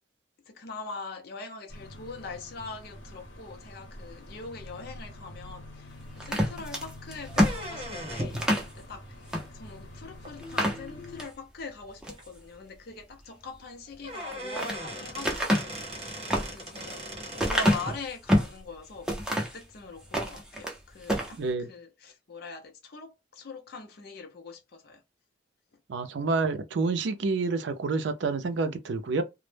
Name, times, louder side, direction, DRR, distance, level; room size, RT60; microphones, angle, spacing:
voice 1, 0.5-17.0 17.3-19.1 19.5-25.0, left 3 dB, 55° left, 0.5 m, -42 dB
sound 1, 1.7-11.3, left 1 dB, 75° left, 0.8 m, -46 dB
sound 2, 6.2-8.7 9.3-9.5 9.8-9.9 10.4-11.3 11.8-12.3 14.1-14.8 15.2-18.6 19.1-19.6 20.0-20.8 21.0-21.3, equal, 5° right, 0.4 m, -27 dB
sound 3, 7.3-8.5 10.2-10.3 11.3-11.4 11.8-11.9 12.2-12.3 13.6-13.7 14.0-18.0, equal, 30° right, 0.9 m, -38 dB
voice 2, 21.4-21.7 25.9-29.2, right 3 dB, 65° right, 0.4 m, -28 dB
2.0 x 2.0 x 3.1 m
head